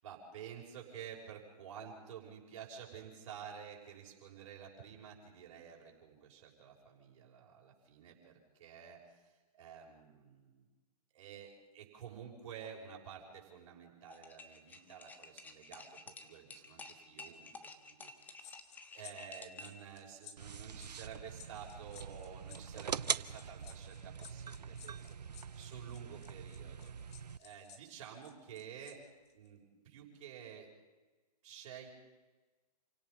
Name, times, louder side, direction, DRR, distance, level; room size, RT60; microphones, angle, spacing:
voice 1, 0.0-10.6 11.1-17.5 17.8-18.5 18.9-29.0 29.3-30.7 31.4-31.9, right 8 dB, 50° right, 0 dB, 6.2 m, -51 dB
sound 1, 14.1-19.9, left 3 dB, 10° left, 1.3 m, -52 dB
sound 2, 18.4-28.9 29.3-29.5, left 9 dB, 40° left, 2.9 m, -56 dB
sound 3, 20.4-27.4, right 7 dB, 85° right, 0.7 m, -43 dB
28.5 x 17.5 x 5.6 m, 1.2 s
hypercardioid pair, 140°, 21 cm